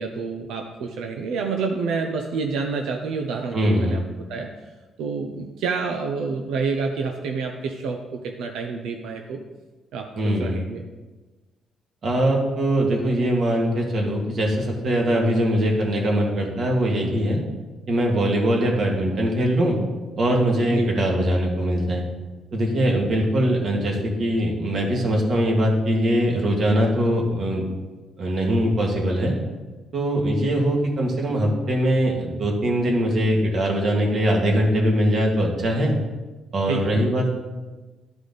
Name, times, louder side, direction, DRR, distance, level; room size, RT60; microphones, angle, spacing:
voice 1, 0.0-4.0 4.3-4.5 5.0-9.4 9.9-10.8 20.7-20.9 36.7-37.1, right 4 dB, 90° right, 3 dB, 0.6 m, -28 dB
voice 2, 3.5-4.0 10.2-10.6 12.0-17.4 17.9-19.8 20.2-22.1 22.5-27.7 28.2-29.3 29.9-36.0 36.5-37.3, right 1 dB, 55° right, -1 dB, 2.0 m, -22 dB
12.0 x 5.0 x 4.0 m, 1.2 s
cardioid pair, 90°, 0 cm